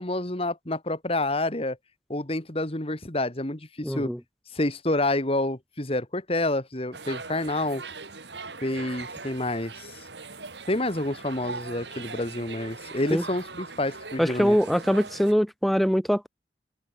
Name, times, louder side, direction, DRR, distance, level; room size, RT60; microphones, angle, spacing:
voice 1, 0.0-1.8 2.1-4.1 4.5-7.8 8.6-9.9 10.7-14.6, left 1 dB, 30° left, 2.3 m, -28 dB
voice 2, 3.8-4.2 13.1-13.2 14.2-16.3, equal, ahead, 1.4 m, -23 dB
sound 1, 6.9-15.3, right 4 dB, 70° right, 3.9 m, -40 dB
head